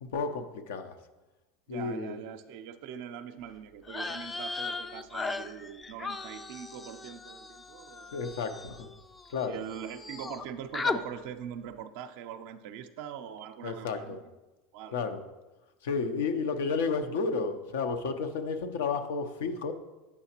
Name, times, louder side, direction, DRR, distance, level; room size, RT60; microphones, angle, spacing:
voice 1, 0.0-1.0 1.7-2.2 8.1-8.9 9.3-9.6 13.6-14.2 14.9-15.2 15.8-19.7, left 4 dB, 80° left, 8 dB, 0.6 m, -32 dB
voice 2, 1.7-8.2 9.4-14.2 14.7-14.9, right 9 dB, 70° right, 7 dB, 0.4 m, -42 dB
sound 1, 3.8-9.5 9.7-10.4 10.7-11.0, left 4 dB, 20° left, 0.3 m, -37 dB
8.3 x 5.7 x 2.8 m, 1.1 s
supercardioid pair, 100°, 0 cm